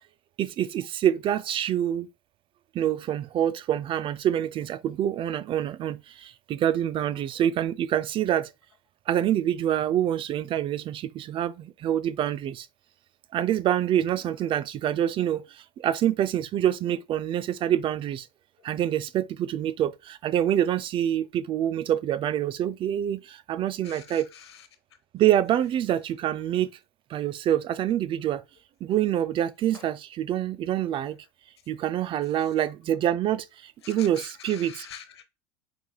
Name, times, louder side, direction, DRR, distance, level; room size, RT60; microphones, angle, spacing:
voice 1, 0.4-2.1 2.7-8.5 9.1-12.7 13.3-18.3 18.6-24.3 25.1-26.7 27.1-28.4 28.8-31.2 31.7-34.9, right 11 dB, 40° right, 0.4 m, -26 dB
voice 2, 23.8-24.7 29.7-29.8 33.8-35.2, left 9 dB, 90° left, 0.8 m, -45 dB
5.9 x 3.3 x 2.3 m
hypercardioid pair, 85°, 13 cm